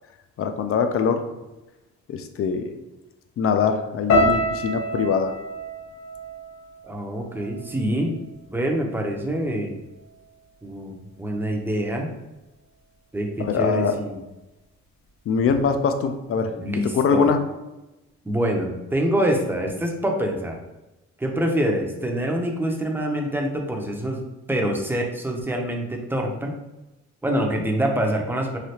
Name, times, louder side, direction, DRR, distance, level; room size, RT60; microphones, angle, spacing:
voice 1, 0.4-1.2 2.1-2.7 3.4-5.3 13.4-13.9 15.3-16.5 16.8-17.4, left 6 dB, 50° left, 7 dB, 0.4 m, -22 dB
sound 1, 4.1-8.3 8.6-9.3 9.9-10.2, equal, 65° left, 0.9 m, -27 dB
voice 2, 6.9-8.2 8.5-9.7 10.6-12.1 13.1-14.2 16.6-17.3 18.2-20.6 21.2-24.2 24.5-26.5 27.2-28.6, right 1 dB, 5° right, 0 dB, 0.5 m, -25 dB
3.2 x 2.4 x 2.8 m, 1.0 s
cardioid pair, 90°, 30 cm